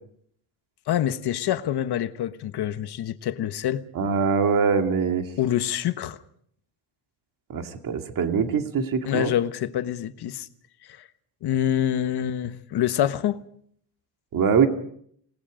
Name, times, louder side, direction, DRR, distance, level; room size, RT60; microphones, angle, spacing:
voice 1, 0.9-3.8 5.4-6.2 9.0-10.5 10.9-11.1 11.4-13.4, left 11 dB, 55° left, 1.3 m, -26 dB
voice 2, 3.9-5.2 7.5-9.3 14.3-14.7, right 6 dB, 45° right, 2.2 m, -23 dB
27.5 x 19.5 x 5.1 m
cardioid pair, 150°, 47 cm